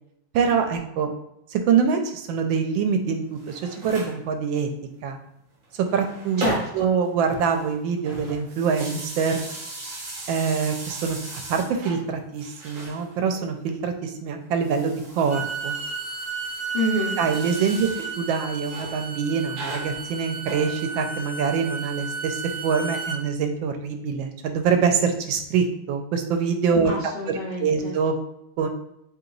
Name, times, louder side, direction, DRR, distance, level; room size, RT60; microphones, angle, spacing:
voice 1, 0.3-1.1 1.5-4.7 5.0-5.2 5.8-6.4 6.7-9.4 10.3-11.2 11.5-15.8 17.2-17.9 18.2-26.9 27.3-28.1 28.6-28.7, right 6 dB, 85° right, 6 dB, 1.3 m, -24 dB
sound 1, 3.2-4.2 5.6-7.0 7.2-12.0 12.3-13.5 14.5-18.1 18.6-19.0 19.5-21.1, right 2 dB, 50° right, 1.1 m, -37 dB
voice 2, 6.4-7.0 16.7-17.2 26.8-27.9, left 1 dB, 75° left, -5 dB, 0.5 m, -28 dB
Bowed string instrument, 15.1-23.2, right 5 dB, 65° right, 0.5 m, -33 dB
3.3 x 2.8 x 3.8 m, 0.80 s
omnidirectional pair, 2.1 m